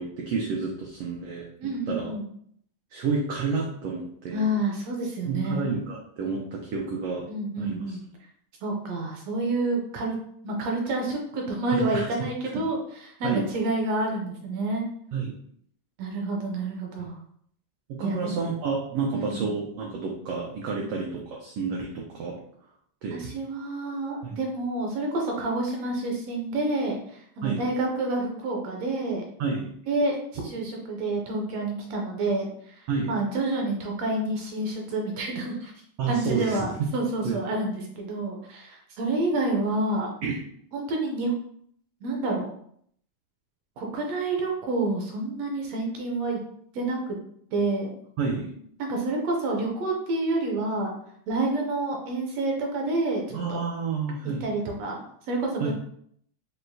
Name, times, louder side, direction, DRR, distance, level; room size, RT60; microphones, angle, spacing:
voice 1, 0.0-1.5 1.9-2.1 2.9-4.4 5.3-7.2 7.6-8.0 11.7-12.1 12.5-12.6 13.2-13.4 15.1-15.3 17.9-22.3 23.0-23.2 24.2-24.3 27.4-27.6 29.4-29.7 32.9-33.1 36.0-36.7 37.2-37.4 40.2-40.4 48.2-48.5 53.3-54.4 55.6-55.7, right 4 dB, 90° right, -1 dB, 1.3 m, -30 dB
voice 2, 1.6-2.2 4.3-5.7 7.3-8.0 8.6-10.2 10.4-14.8 16.0-17.2 18.0-18.4 19.1-19.5 23.1-29.2 29.9-35.7 36.1-40.1 40.7-41.3 42.0-42.5 43.8-46.4 46.7-47.2 47.5-47.9 48.8-50.9 51.3-53.6 54.4-55.7, right 2 dB, 75° right, 0 dB, 1.7 m, -28 dB
6.2 x 2.1 x 2.6 m, 0.66 s
omnidirectional pair, 3.4 m